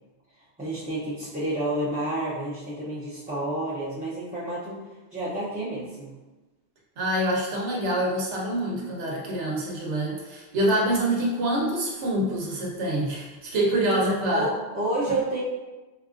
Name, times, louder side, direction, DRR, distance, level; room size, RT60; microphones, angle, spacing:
voice 1, 0.6-4.8 5.1-6.1 14.3-15.4, right 1 dB, 10° right, -11 dB, 0.5 m, -29 dB
voice 2, 7.0-14.5, right 1 dB, 85° right, -2 dB, 1.1 m, -26 dB
4.3 x 2.3 x 2.5 m, 1.1 s
omnidirectional pair, 1.1 m